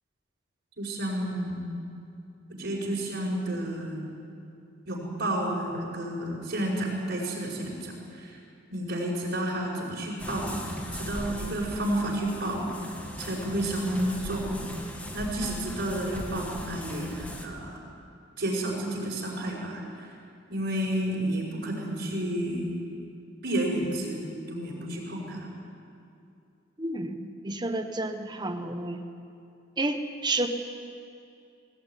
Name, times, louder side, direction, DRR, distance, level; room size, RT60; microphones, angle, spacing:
voice 1, 0.8-1.6 2.5-4.1 4.9-8.3 8.7-10.6 10.9-12.7 13.2-14.7 15.1-17.8 18.4-20.1 20.5-22.7 23.4-25.5, right 1 dB, 55° right, -4 dB, 5.4 m, -31 dB
sound 1, 10.2-17.5, equal, 5° left, 1.9 m, -38 dB
voice 2, 26.8-27.2 27.4-29.0 29.8-30.5, right 2 dB, 20° right, 7 dB, 1.3 m, -30 dB
19.5 x 18.0 x 9.2 m, 2.6 s
head